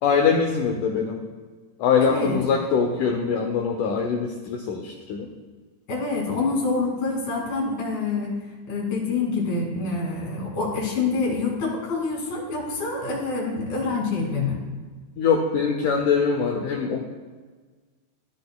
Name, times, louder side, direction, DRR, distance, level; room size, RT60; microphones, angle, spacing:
voice 1, 0.0-1.2 1.8-5.3 15.2-17.1, left 6 dB, 85° left, 2 dB, 1.8 m, -23 dB
voice 2, 2.0-2.4 5.9-8.4 8.7-14.6, left 3 dB, 65° left, -3 dB, 4.2 m, -26 dB
15.0 x 10.0 x 2.2 m, 1.4 s
omnidirectional pair, 4.6 m